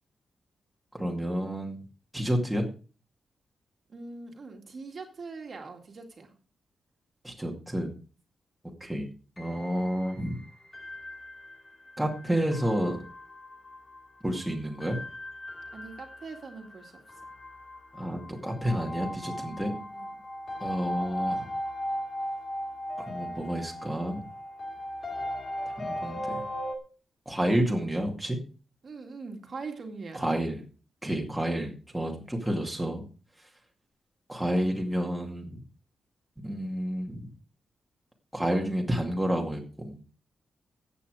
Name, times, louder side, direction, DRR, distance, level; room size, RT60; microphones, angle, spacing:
voice 1, 0.9-1.8 2.1-2.7 7.2-7.9 8.8-9.1 9.4-10.4 12.0-13.0 14.2-15.0 17.9-19.7 20.6-21.5 23.0-24.2 25.8-26.2 27.3-28.4 30.1-30.6 31.0-33.0 34.3-35.6 36.4-37.3 38.3-40.0, equal, 5° right, 0 dB, 2.2 m, -30 dB
voice 2, 3.9-6.3 15.7-17.2 19.3-20.2 28.8-30.3, right 4 dB, 40° right, 4 dB, 2.2 m, -42 dB
sound 1, 9.4-26.8, equal, 25° left, 2.0 m, -38 dB
14.5 x 8.5 x 4.8 m, 0.37 s
wide cardioid pair, 180°, 0 cm